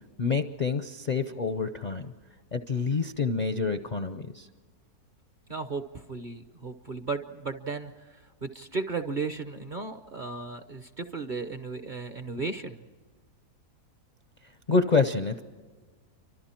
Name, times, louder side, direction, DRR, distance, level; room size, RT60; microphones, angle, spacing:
voice 1, 0.2-2.1 2.5-4.5 14.7-15.4, left 4 dB, 45° left, 9 dB, 0.5 m, -27 dB
voice 2, 5.5-8.1 8.4-12.8, right 4 dB, 40° right, 8 dB, 0.7 m, -35 dB
28.5 x 24.5 x 4.4 m, 1.5 s
omnidirectional pair, 1.7 m